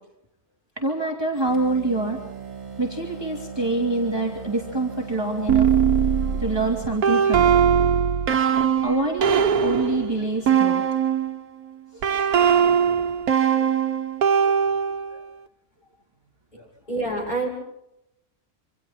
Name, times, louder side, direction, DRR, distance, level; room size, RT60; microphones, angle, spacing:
voice 1, 0.8-2.2 2.8-5.7 6.4-7.5 8.8-10.8 11.9-12.1 12.9-13.0 14.4-14.5 15.1-15.2 16.5-16.6, right 2 dB, 15° right, -1 dB, 2.9 m, -26 dB
sound 1, 1.3-7.6, right 5 dB, 45° right, 3.7 m, -38 dB
sound 2, 5.5-11.4 12.0-15.2, right 8 dB, 85° right, 1.6 m, -20 dB
voice 2, 16.9-17.5, right 2 dB, 30° left, -1 dB, 7.1 m, -26 dB
27.5 x 26.5 x 4.4 m, 0.83 s
omnidirectional pair, 1.5 m